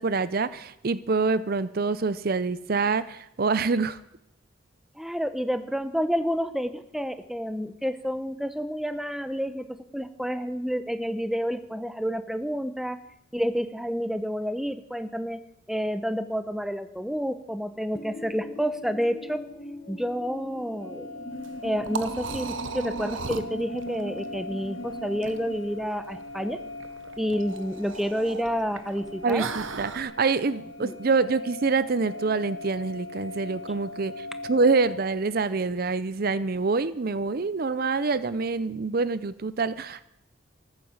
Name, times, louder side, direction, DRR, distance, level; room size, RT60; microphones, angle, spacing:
voice 1, 0.0-4.0 29.2-40.1, right 4 dB, 50° right, 15 dB, 0.5 m, -26 dB
voice 2, 5.0-9.7 9.9-13.0 13.3-15.4 15.7-19.4 19.9-21.1 21.6-26.6 27.2-29.5 30.8-30.9, equal, ahead, 10 dB, 0.8 m, -29 dB
sound 1, 17.9-25.6, equal, 40° left, 1.2 m, -41 dB
sound 2, 20.8-35.0, left 2 dB, 70° left, 1.6 m, -41 dB
Liquid, 21.3-30.0, right 4 dB, 75° right, 1.1 m, -38 dB
14.5 x 12.0 x 7.2 m, 0.82 s
head